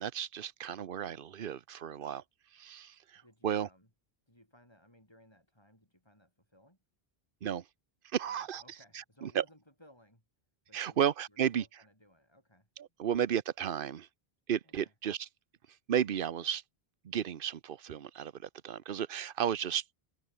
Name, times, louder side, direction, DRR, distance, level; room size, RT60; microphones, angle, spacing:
voice 1, 0.0-2.2 2.5-3.7 7.4-7.6 8.1-8.6 9.2-9.4 10.7-11.6 12.8-14.1 14.5-15.3 15.9-16.6 17.0-19.8, right 9 dB, 60° right, 1.0 m, -33 dB
voice 2, 3.1-3.9 4.3-6.8 8.3-10.2 10.7-12.7 13.0-13.1 14.6-14.9, equal, 25° left, 7.8 m, -62 dB
omnidirectional pair, 1.0 m